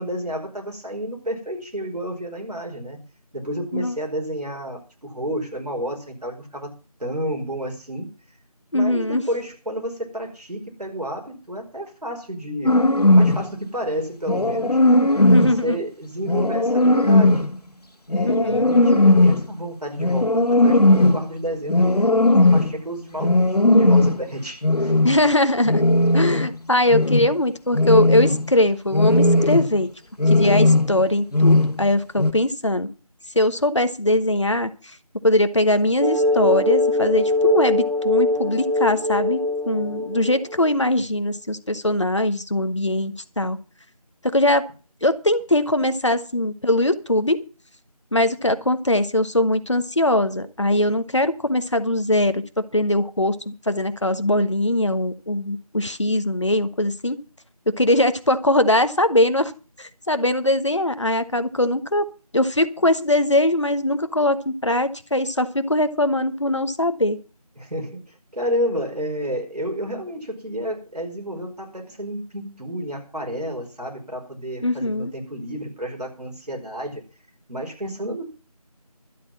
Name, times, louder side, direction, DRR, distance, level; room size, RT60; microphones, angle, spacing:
voice 1, 0.0-3.0 3.3-6.7 7.0-8.1 8.7-12.8 13.1-14.8 15.2-17.5 18.1-25.0 67.6-77.0 77.5-78.3, equal, 90° right, 1 dB, 4.8 m, -30 dB
voice 2, 8.7-9.2 15.2-15.8 18.2-18.7 25.0-25.8 26.1-29.9 30.3-32.9 33.3-34.7 35.2-39.4 39.7-43.6 44.2-44.6 45.0-47.4 48.1-57.2 57.8-59.5 59.8-62.0 62.3-67.2 74.6-75.1, left 1 dB, 50° left, 10 dB, 1.2 m, -21 dB
sound 1, 12.6-13.5 14.3-15.6 16.2-17.5 18.1-19.5 20.0-21.3 21.7-22.7 23.2-24.2 24.6-25.2 25.6-26.6 26.9-27.3 27.7-28.5 28.9-29.8 30.2-31.0 31.3-31.9 32.2-32.3, left 2 dB, 80° left, 1.9 m, -17 dB
sound 2, 36.0-40.7, left 1 dB, 50° right, 1.7 m, -22 dB
12.5 x 8.3 x 7.2 m, 0.35 s
figure-of-eight pair, 175°, 20 cm